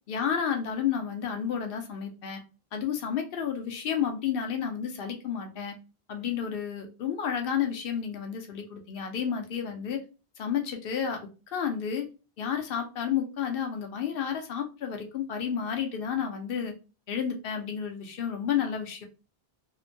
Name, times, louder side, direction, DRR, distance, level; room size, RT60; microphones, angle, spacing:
voice 1, 0.1-2.4 2.7-5.7 6.1-10.0 10.4-11.2 11.5-12.1 12.4-16.7 17.1-19.1, left 8 dB, 65° left, 4 dB, 0.7 m, -31 dB
2.8 x 2.1 x 2.5 m, 0.32 s
omnidirectional pair, 1.0 m